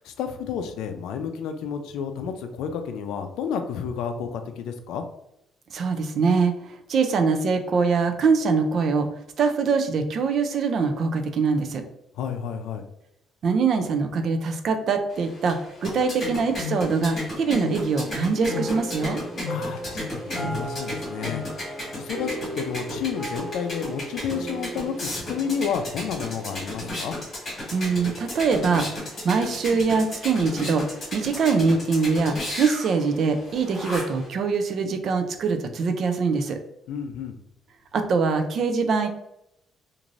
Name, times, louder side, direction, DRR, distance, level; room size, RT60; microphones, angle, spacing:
voice 1, 0.0-5.0 12.1-12.8 19.5-27.2 36.9-37.4, left 7 dB, 85° left, 6 dB, 0.4 m, -31 dB
voice 2, 5.7-9.1 9.4-11.8 13.4-19.2 27.7-30.9 31.1-36.6 37.9-39.1, right 4 dB, 50° right, 6 dB, 0.4 m, -23 dB
sound 1, 15.1-34.3, left 1 dB, 35° left, 1.5 m, -34 dB
sound 2, 18.5-27.0, right 1 dB, 10° left, 0.5 m, -36 dB
3.1 x 2.5 x 2.5 m, 0.79 s
cardioid pair, 145°, 0 cm